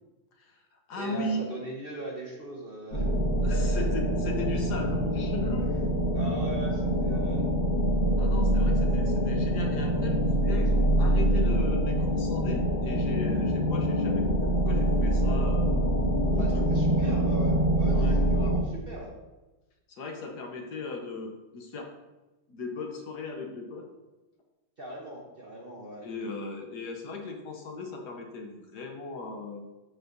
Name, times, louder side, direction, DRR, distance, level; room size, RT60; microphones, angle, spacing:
voice 1, 0.4-1.4 3.4-5.7 8.2-15.7 16.3-16.8 17.9-18.6 19.9-21.9 22.5-23.9 26.0-29.6, left 2 dB, 65° left, 2 dB, 1.5 m, -37 dB
voice 2, 0.9-3.1 5.6-5.8 6.1-7.4 16.4-19.1 24.8-26.1, right 1 dB, 40° right, -2 dB, 1.0 m, -40 dB
sound 1, 2.9-18.6, right 1 dB, 85° left, 2.6 m, -25 dB
12.5 x 4.9 x 2.6 m, 1.1 s
omnidirectional pair, 2.0 m